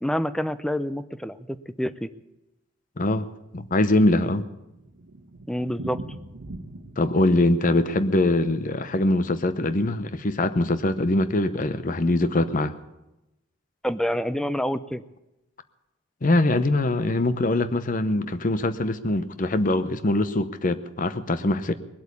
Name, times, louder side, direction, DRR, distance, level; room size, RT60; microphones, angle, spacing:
voice 1, 0.0-2.1 5.5-6.0 13.8-15.0, equal, 5° left, 13 dB, 0.5 m, -27 dB
voice 2, 3.0-3.3 3.5-4.4 7.0-12.7 16.2-21.7, left 2 dB, 40° left, 12 dB, 0.8 m, -23 dB
Thunder, 4.5-10.2 10.4-10.5 10.8-10.9 11.1-11.2 11.8-12.1, right 1 dB, 75° right, 1.2 m, -43 dB
20.0 x 8.3 x 8.4 m, 0.94 s
head